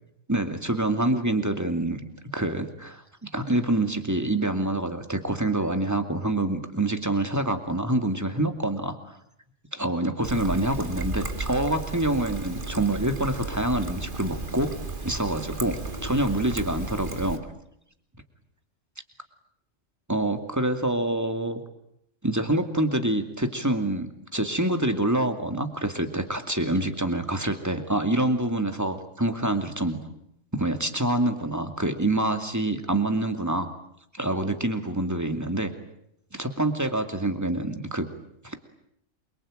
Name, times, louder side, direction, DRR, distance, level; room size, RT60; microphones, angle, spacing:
voice 1, 0.3-2.0 2.3-9.0 9.7-14.7 15.0-17.4 20.1-21.6 22.2-30.0 30.5-33.7 34.1-35.7 36.3-38.1 38.4-38.6, right 1 dB, 15° right, 7 dB, 2.5 m, -26 dB
Trickle dribble, 10.2-17.4, right 2 dB, 40° right, 2.3 m, -34 dB
28.0 x 24.0 x 9.0 m, 0.77 s
omnidirectional pair, 1.3 m